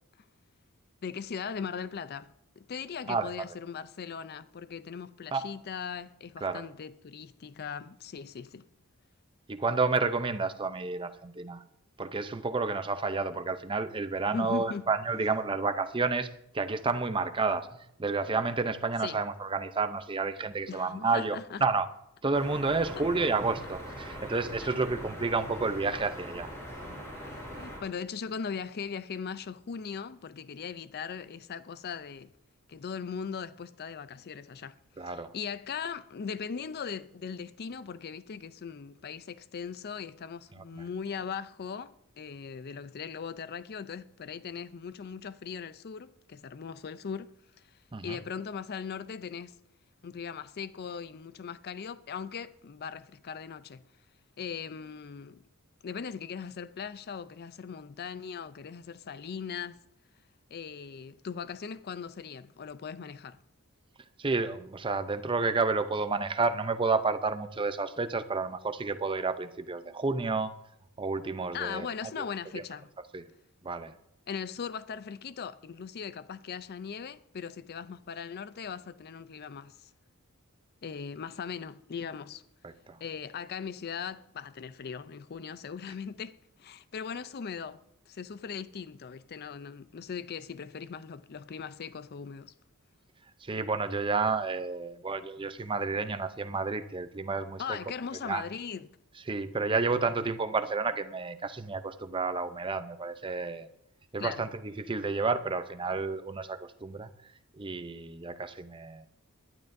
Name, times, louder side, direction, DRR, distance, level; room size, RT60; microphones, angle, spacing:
voice 1, 1.0-8.7 14.3-14.9 19.0-19.2 20.7-21.6 24.6-24.9 27.2-32.3 32.7-47.3 48.0-49.5 50.0-53.9 54.4-55.4 55.8-59.8 60.5-63.4 71.5-72.9 74.3-79.9 80.8-82.4 83.0-87.8 88.1-92.5 97.6-98.9 104.2-104.4, left 6 dB, 45° left, 0.4 m, -39 dB
voice 2, 9.5-11.6 12.0-21.9 22.2-26.5 35.0-35.3 40.6-40.8 47.9-48.2 64.2-70.5 71.0-71.9 72.2-72.3 73.1-73.2 73.6-73.9 82.6-83.0 93.4-97.8 98.2-98.4 99.3-103.7 104.1-107.1 107.5-109.1, right 4 dB, 25° right, 0.6 m, -30 dB
sound 1, 22.3-27.8, equal, 15° left, 4.7 m, -42 dB
21.5 x 11.0 x 2.6 m
head